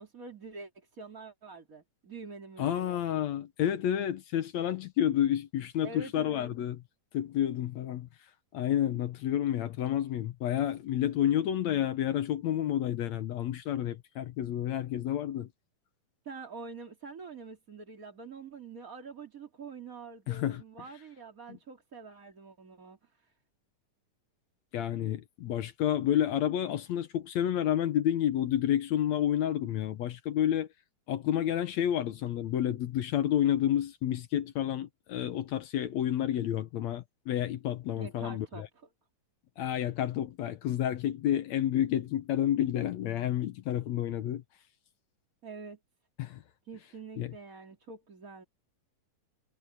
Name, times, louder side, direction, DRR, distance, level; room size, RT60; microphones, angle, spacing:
voice 1, 0.0-3.0 5.8-6.5 16.2-23.3 37.9-38.9 45.4-45.8 46.6-48.4, right 4 dB, 25° right, 2.6 m, -46 dB
voice 2, 2.6-6.8 7.1-8.1 8.5-15.5 20.3-20.6 24.7-30.7 31.1-38.7 39.6-44.4 46.2-46.4 47.2-47.3, left 11 dB, 70° left, 1.9 m, -30 dB
omnidirectional pair, 3.8 m